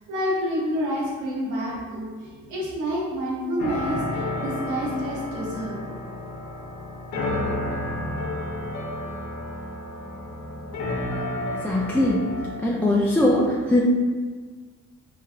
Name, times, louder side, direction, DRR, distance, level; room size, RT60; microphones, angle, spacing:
voice 1, 0.1-5.8, equal, 80° right, -4 dB, 1.0 m, -28 dB
sound 1, 3.6-12.5, left 1 dB, 80° left, 0.8 m, -31 dB
voice 2, 11.6-12.3 12.6-13.8, left 1 dB, 5° left, -4 dB, 0.3 m, -21 dB
3.4 x 3.2 x 2.4 m, 1.5 s
cardioid pair, 90°, 30 cm